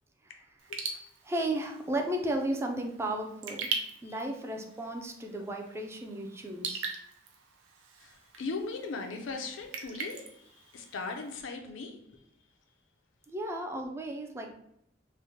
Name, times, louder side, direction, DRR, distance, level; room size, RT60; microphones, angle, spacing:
Raindrop / Drip, 0.6-11.4, right 5 dB, 90° right, 0.5 m, -42 dB
voice 1, 1.2-3.7 4.0-6.9 13.3-14.5, right 1 dB, 15° right, 3 dB, 0.3 m, -34 dB
voice 2, 8.0-12.3, left 3 dB, 90° left, 4 dB, 0.5 m, -39 dB
3.1 x 2.0 x 2.7 m, 0.77 s
head